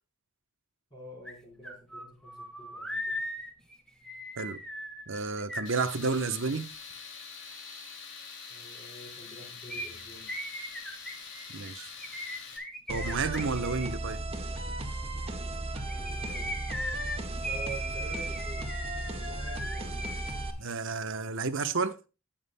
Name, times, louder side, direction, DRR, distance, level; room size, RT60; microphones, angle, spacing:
voice 1, 0.9-3.2 8.5-10.4 15.8-16.7 17.3-18.8 19.0-20.2, right 2 dB, 20° left, 4.1 m, -47 dB
sound 1, 1.2-1.3 1.6-6.4 9.7-13.9 15.7-20.4 20.6-20.7, equal, 5° left, 2.1 m, -38 dB
voice 2, 5.1-6.7 11.5-11.9 12.9-14.2 20.6-22.0, right 4 dB, 60° right, 0.9 m, -31 dB
Tools, 5.6-12.6, left 5 dB, 55° left, 3.3 m, -45 dB
sound 2, 12.9-20.5, right 2 dB, 25° right, 1.5 m, -35 dB
19.5 x 7.3 x 2.2 m
head